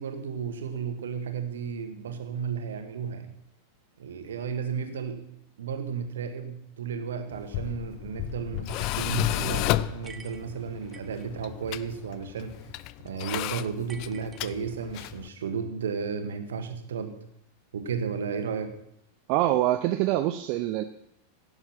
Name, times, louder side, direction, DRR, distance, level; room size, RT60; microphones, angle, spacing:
voice 1, 0.0-3.3 4.0-5.3 5.6-12.5 13.0-17.2 17.7-18.7, right 6 dB, 65° right, 7 dB, 1.6 m, -33 dB
Tools, 7.3-15.3, left 16 dB, 40° left, 0.4 m, -32 dB
sound 1, 10.0-11.3 13.9-15.0, right 4 dB, 15° right, 1.0 m, -49 dB
voice 2, 19.3-20.8, right 14 dB, 45° right, 9 dB, 0.6 m, -25 dB
16.0 x 7.0 x 5.7 m, 0.76 s
figure-of-eight pair, 90°, 0 cm